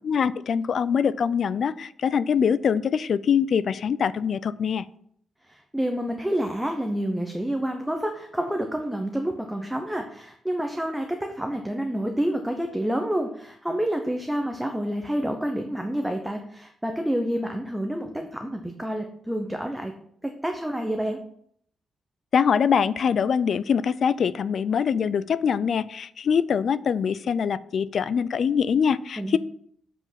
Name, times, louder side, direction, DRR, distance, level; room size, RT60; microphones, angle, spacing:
voice 1, 0.0-4.8 22.3-29.4, left 7 dB, 50° left, 17 dB, 0.4 m, -23 dB
voice 2, 5.5-19.9 20.2-21.2 29.2-29.4, equal, 5° right, 4 dB, 0.7 m, -28 dB
7.7 x 4.9 x 5.8 m, 0.66 s
wide cardioid pair, 155°, 0 cm